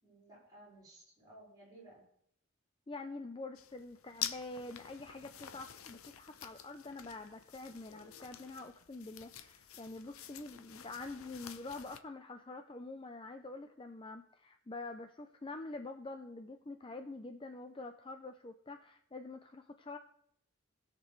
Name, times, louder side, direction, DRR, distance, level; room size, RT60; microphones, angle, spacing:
voice 1, 0.0-2.1, right 1 dB, 15° right, -7 dB, 5.0 m, -57 dB
voice 2, 2.9-20.0, left 3 dB, 25° left, 7 dB, 0.4 m, -46 dB
sound 1, 3.5-12.0, left 10 dB, 85° left, 0.7 m, -48 dB
19.5 x 6.7 x 3.1 m, 0.72 s
head